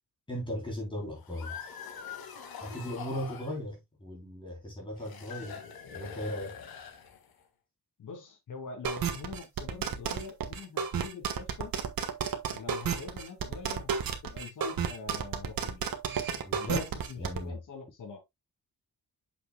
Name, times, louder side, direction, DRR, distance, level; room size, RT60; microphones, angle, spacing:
voice 1, 0.3-1.6 2.6-5.6 5.9-6.6 16.4-17.5, equal, 15° left, 3.5 m, -37 dB
sound 1, 1.1-3.6 5.0-7.4, left 7 dB, 85° left, 2.0 m, -44 dB
voice 2, 8.0-11.7 12.5-15.8 16.6-18.2, left 4 dB, 60° left, 2.6 m, -44 dB
sound 2, 8.8-17.4, right 7 dB, 70° right, 1.4 m, -32 dB
8.2 x 6.8 x 2.2 m
wide cardioid pair, 170°, 35 cm